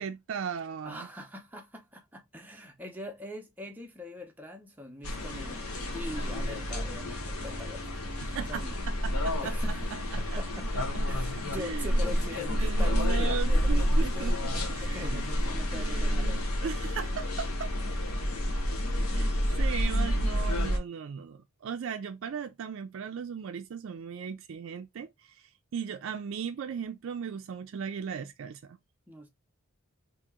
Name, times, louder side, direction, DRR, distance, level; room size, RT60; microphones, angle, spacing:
voice 1, 0.0-1.1 8.2-9.5 10.1-10.4 11.6-12.2 12.5-15.2 15.7-17.7 19.1-19.3 19.6-25.1 25.7-28.8, right 7 dB, 60° right, 0.3 m, -37 dB
voice 2, 0.8-8.8 9.4-16.4 29.1-29.3, left 1 dB, 10° right, 0.7 m, -43 dB
sound 1, 5.0-20.8, equal, 90° left, 1.0 m, -29 dB
2.9 x 2.7 x 3.5 m
head